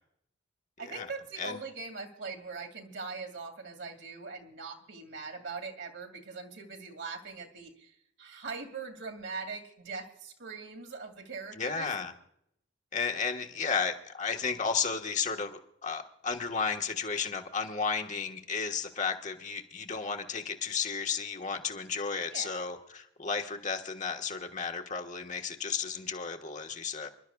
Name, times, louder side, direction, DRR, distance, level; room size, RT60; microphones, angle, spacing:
voice 1, 0.8-11.9 22.3-22.8, right 4 dB, 65° right, 4 dB, 2.3 m, -41 dB
voice 2, 11.6-12.1 12.9-27.1, left 5 dB, 40° left, 3 dB, 1.4 m, -33 dB
27.5 x 12.0 x 2.3 m, 0.71 s
head